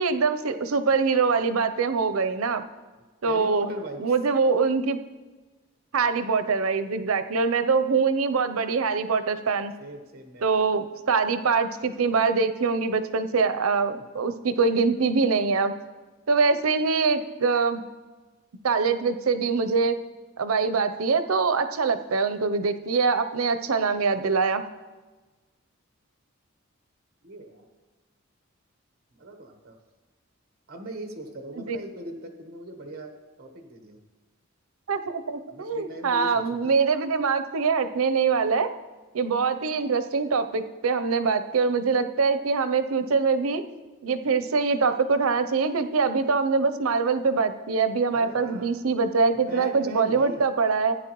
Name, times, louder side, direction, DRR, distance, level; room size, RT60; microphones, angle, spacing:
voice 1, 0.0-2.6 3.2-3.7 4.0-5.0 5.9-9.7 10.4-15.7 16.3-17.8 18.6-20.0 20.4-24.6 31.6-31.8 34.9-38.7 39.1-43.6 44.0-50.9, right 4 dB, 90° right, 10 dB, 0.6 m, -24 dB
voice 2, 3.3-4.0 9.8-10.6 27.2-27.7 29.2-29.7 30.7-33.1 33.4-34.0 35.5-36.7 48.1-48.8 49.5-50.4, right 1 dB, 45° right, 4 dB, 1.2 m, -38 dB
14.5 x 9.5 x 3.0 m, 1.3 s
head